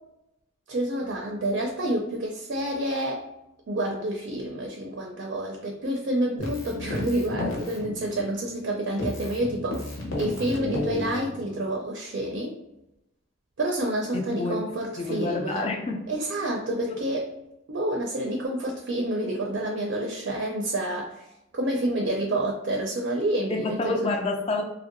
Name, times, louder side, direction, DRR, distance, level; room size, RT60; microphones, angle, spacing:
voice 1, 0.7-3.3 3.7-12.5 13.6-15.6 16.1-17.3 17.7-21.2 21.5-24.1, right 1 dB, 55° right, 0 dB, 0.4 m, -28 dB
Keyboard (musical), 6.4-8.7 9.0-11.8, left 2 dB, 70° left, 0.7 m, -33 dB
voice 2, 14.1-14.7 15.0-16.0 16.9-17.0 23.5-24.6, left 2 dB, 30° left, 2 dB, 0.3 m, -28 dB
2.7 x 2.0 x 2.5 m, 0.88 s
head